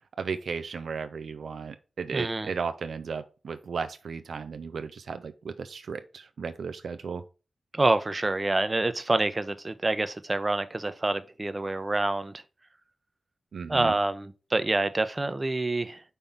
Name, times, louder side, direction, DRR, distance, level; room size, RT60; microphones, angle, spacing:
voice 1, 0.2-7.2 13.5-13.9, right 5 dB, 80° right, 0.5 m, -35 dB
voice 2, 2.1-2.5 7.7-12.3 13.7-16.0, right 2 dB, 35° right, 0.7 m, -27 dB
5.5 x 3.4 x 5.6 m
cardioid pair, 50°, 0 cm